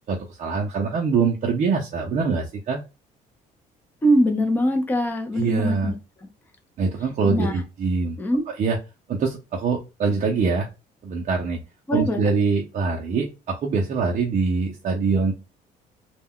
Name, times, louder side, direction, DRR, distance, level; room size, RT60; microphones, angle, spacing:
voice 1, 0.1-2.8 5.3-5.9 6.8-8.2 8.5-8.8 9.1-10.7 11.0-11.6 11.9-15.3, right 4 dB, 45° right, -1 dB, 0.5 m, -24 dB
voice 2, 4.0-5.9 7.2-7.6 8.2-8.4 11.9-12.2, equal, 10° left, 5 dB, 0.5 m, -22 dB
2.2 x 2.1 x 3.5 m, 0.28 s
cardioid pair, 110°, 17 cm